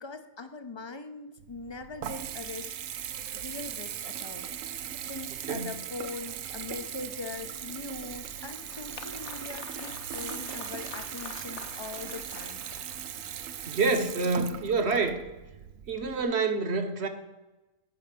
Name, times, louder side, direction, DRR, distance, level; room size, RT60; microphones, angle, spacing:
voice 1, 0.0-2.7 3.3-12.7, left 4 dB, 35° left, 9 dB, 0.4 m, -42 dB
Water tap faucet / Bathtub (filling or washing) / Trickle dribble, 1.4-16.2, right 9 dB, 85° right, 1.1 m, -39 dB
Applause, 8.0-13.3, left 7 dB, 65° left, 1.0 m, -46 dB
voice 2, 13.7-15.2 15.9-17.1, right 4 dB, 55° right, 7 dB, 1.3 m, -27 dB
8.8 x 5.5 x 7.4 m, 1.1 s
omnidirectional pair, 1.3 m